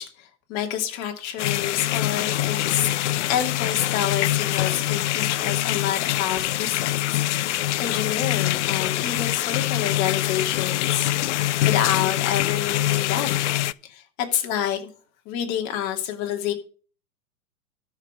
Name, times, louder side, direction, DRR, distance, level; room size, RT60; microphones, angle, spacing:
voice 1, 0.0-2.9 3.3-13.4 13.8-14.9 15.3-16.5, left 10 dB, 40° left, 4 dB, 2.8 m, -28 dB
sound 1, 1.4-13.7, left 14 dB, 55° left, 0.6 m, -24 dB
13.0 x 5.9 x 6.4 m, 0.38 s
figure-of-eight pair, 100°, 42 cm